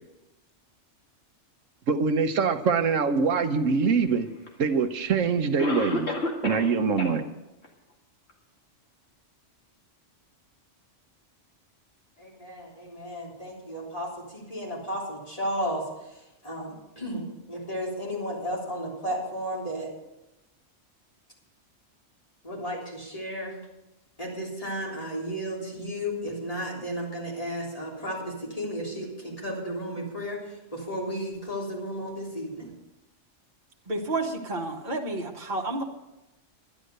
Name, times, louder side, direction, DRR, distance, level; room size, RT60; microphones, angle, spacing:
voice 1, 1.9-4.3 4.6-6.1 6.4-7.2, right 5 dB, 85° right, 9 dB, 1.3 m, -24 dB
Cough, 4.5-4.6 5.6-6.7 7.0-7.1 7.6-7.7 8.3-8.4, left 2 dB, 60° left, 2.4 m, -29 dB
voice 2, 12.2-19.9 22.4-23.6 24.2-32.7, equal, 30° left, -4 dB, 3.6 m, -34 dB
voice 3, 33.9-35.8, right 2 dB, 40° right, -1 dB, 1.6 m, -30 dB
11.5 x 11.5 x 6.6 m, 0.96 s
omnidirectional pair, 1.3 m